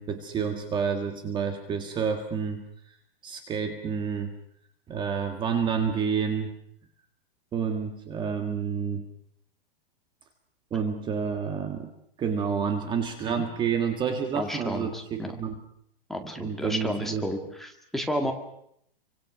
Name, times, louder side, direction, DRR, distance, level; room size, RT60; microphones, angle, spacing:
voice 1, 0.0-2.6 3.2-4.3 4.9-6.5 7.5-9.1 10.7-11.9 12.2-15.6 16.2-17.3, right 6 dB, 15° right, 6 dB, 1.8 m, -29 dB
voice 2, 14.3-15.4 16.1-18.3, equal, ahead, 3 dB, 2.1 m, -32 dB
29.5 x 25.0 x 6.3 m, 0.71 s
hypercardioid pair, 165°, 30 cm